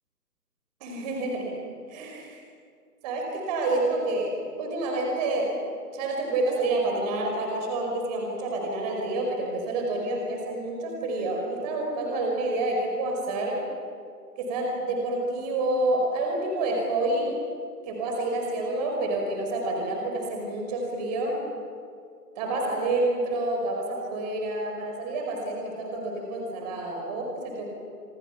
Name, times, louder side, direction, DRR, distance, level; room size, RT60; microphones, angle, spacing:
voice 1, 0.8-1.6 1.9-2.4 3.0-5.6 5.9-13.6 14.4-17.4 17.8-21.4 22.3-27.7, right 2 dB, 25° right, 1 dB, 5.1 m, -28 dB
28.0 x 26.0 x 5.9 m, 2.2 s
figure-of-eight pair, 150°, 48 cm